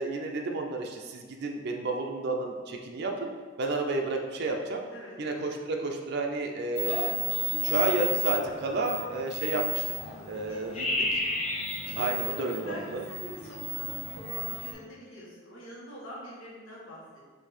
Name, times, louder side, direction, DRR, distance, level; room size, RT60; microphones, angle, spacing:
voice 1, 0.0-3.3 3.6-4.8 5.2-7.1 7.5-9.8 10.3-11.2 12.0-13.0, right 2 dB, 55° right, 2 dB, 0.5 m, -31 dB
sound 1, 6.8-14.7, equal, 35° left, 0.6 m, -33 dB
voice 2, 10.1-10.6 10.9-11.1 11.8-17.0, equal, 85° left, -6 dB, 1.3 m, -44 dB
4.5 x 2.7 x 4.2 m, 1.5 s
head